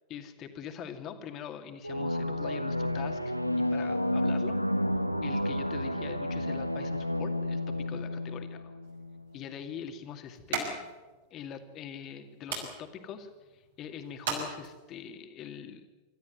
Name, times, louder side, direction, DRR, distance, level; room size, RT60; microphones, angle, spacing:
voice 1, 0.1-4.6 5.2-8.7 9.3-10.9 11.3-15.8, left 8 dB, 35° left, 6 dB, 2.4 m, -43 dB
sound 1, 1.8-9.2, left 1 dB, 90° left, 0.8 m, -31 dB
sound 2, 8.8-15.1, right 4 dB, 60° right, 5.7 m, -41 dB
26.0 x 13.5 x 9.3 m, 1.2 s
figure-of-eight pair, 90°, 0 cm